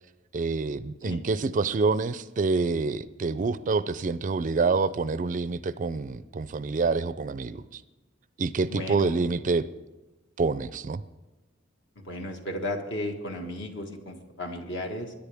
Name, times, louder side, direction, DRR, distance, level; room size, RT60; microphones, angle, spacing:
voice 1, 0.3-7.8 8.4-9.7 10.4-11.0, right 4 dB, 40° right, 15 dB, 0.4 m, -27 dB
voice 2, 8.7-9.1 11.9-15.1, left 1 dB, 60° left, 3 dB, 1.6 m, -34 dB
21.0 x 10.5 x 3.5 m, 1.1 s
head